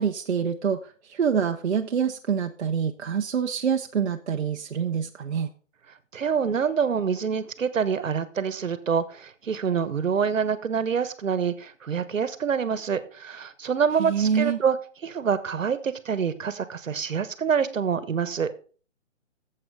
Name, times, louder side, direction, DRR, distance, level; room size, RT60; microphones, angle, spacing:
voice 1, 0.0-5.5 14.0-14.6, right 7 dB, 60° right, 3 dB, 0.8 m, -26 dB
voice 2, 6.1-14.8 15.0-18.5, right 6 dB, 75° right, 14 dB, 1.3 m, -26 dB
8.1 x 7.7 x 5.5 m, 0.40 s
hypercardioid pair, 170°, 39 cm